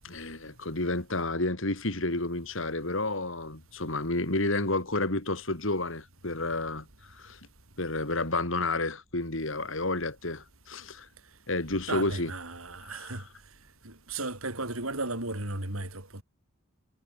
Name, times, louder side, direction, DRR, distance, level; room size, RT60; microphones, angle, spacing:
voice 1, 0.0-7.4 7.8-11.1 11.5-12.3 12.8-13.2, left 2 dB, 65° left, 3.5 m, -31 dB
voice 2, 11.9-13.3 13.8-16.2, right 2 dB, 85° right, 7.0 m, -35 dB
head